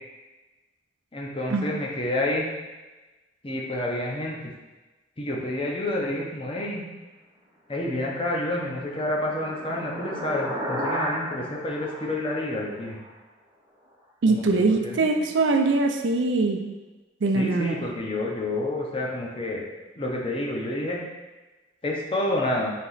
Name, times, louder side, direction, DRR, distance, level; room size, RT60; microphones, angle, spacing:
voice 1, 1.1-2.5 3.4-4.4 5.2-6.9 7.7-13.0 14.3-15.1 17.3-19.6 20.0-21.0 21.8-22.7, left 1 dB, 30° left, -2 dB, 0.7 m, -29 dB
sound 1, 8.6-13.1, equal, 20° right, 0.8 m, -34 dB
voice 2, 14.2-16.6 17.2-17.9, right 3 dB, 90° right, 4 dB, 0.5 m, -22 dB
4.2 x 3.0 x 3.9 m, 1.2 s
head